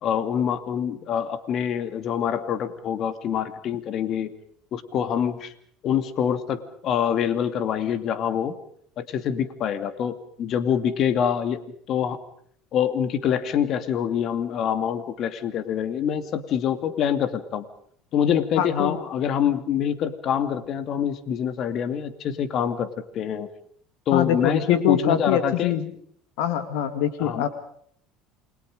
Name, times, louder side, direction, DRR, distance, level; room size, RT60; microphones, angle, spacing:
voice 1, 0.0-4.3 4.7-5.5 5.8-8.6 9.0-11.6 11.9-12.2 12.7-17.6 18.1-23.5 24.1-25.7 27.2-27.4, left 8 dB, 55° left, 11 dB, 2.5 m, -25 dB
voice 2, 18.6-19.0 24.1-25.9 26.4-27.5, left 10 dB, 75° left, 10 dB, 2.2 m, -24 dB
29.0 x 22.5 x 5.0 m, 0.62 s
supercardioid pair, 85°, 0 cm